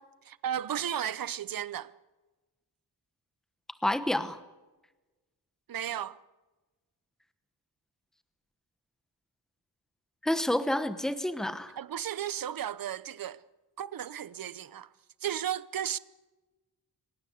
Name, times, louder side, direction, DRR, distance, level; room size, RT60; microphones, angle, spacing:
voice 1, 0.2-1.9 5.7-6.2 11.8-13.4 13.8-14.9 15.2-16.0, right 10 dB, 60° right, 0.8 m, -34 dB
voice 2, 3.8-4.4 10.2-11.8, left 1 dB, ahead, 1.1 m, -29 dB
26.0 x 16.5 x 8.1 m
wide cardioid pair, 175°, 40 cm